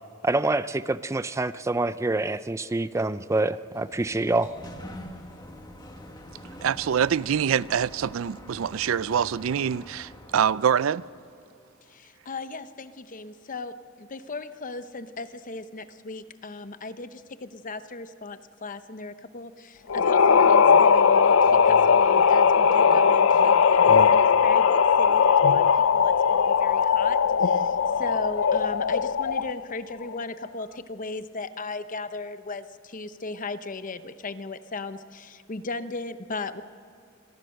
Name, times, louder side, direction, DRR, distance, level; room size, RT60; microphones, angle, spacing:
voice 1, 0.2-4.5, right 2 dB, 15° right, 0.4 m, -26 dB
Sliding door, 3.6-10.9, left 1 dB, 20° left, 1.7 m, -45 dB
voice 2, 6.6-11.0, right 8 dB, 75° right, 0.4 m, -25 dB
voice 3, 11.9-25.7 25.9-36.6, left 3 dB, 40° left, 0.8 m, -37 dB
sound 1, 19.9-29.6, left 6 dB, 80° left, 0.5 m, -19 dB
25.0 x 19.0 x 6.6 m
head